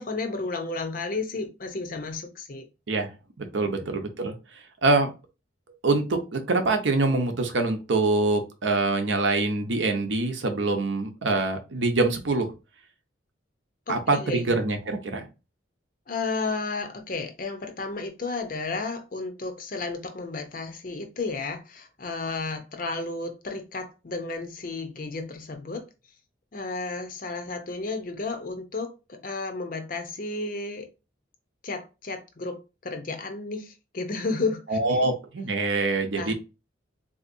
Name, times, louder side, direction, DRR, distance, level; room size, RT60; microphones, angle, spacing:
voice 1, 0.0-2.7 3.6-3.8 13.9-14.6 16.1-25.9 26.5-30.9 31.6-35.1 36.1-36.3, left 3 dB, 45° left, 0.6 m, -33 dB
voice 2, 3.4-4.3 4.8-5.1 5.8-12.5 13.9-15.2 34.7-36.3, right 3 dB, 70° right, 0.7 m, -24 dB
3.8 x 2.8 x 2.5 m
head